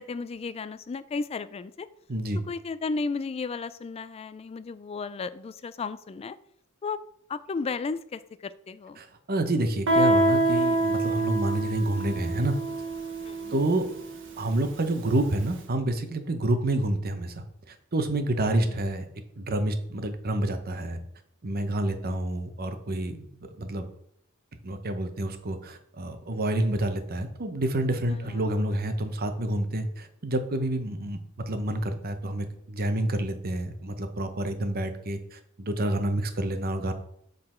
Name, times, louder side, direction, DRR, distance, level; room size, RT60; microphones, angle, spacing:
voice 1, 0.0-1.9 2.5-6.4 6.8-7.0 7.3-9.0 13.2-13.6 18.5-18.8 28.1-28.5, left 4 dB, 30° left, 14 dB, 0.3 m, -34 dB
voice 2, 2.1-2.4 9.0-12.5 13.5-13.9 14.4-19.0 19.4-21.0 21.4-23.3 23.6-23.8 24.6-31.2 31.5-36.9, right 1 dB, 45° right, 8 dB, 0.8 m, -28 dB
Guitar, 9.9-15.3, right 2 dB, 60° right, 1.2 m, -26 dB
7.6 x 3.9 x 4.4 m, 0.71 s
head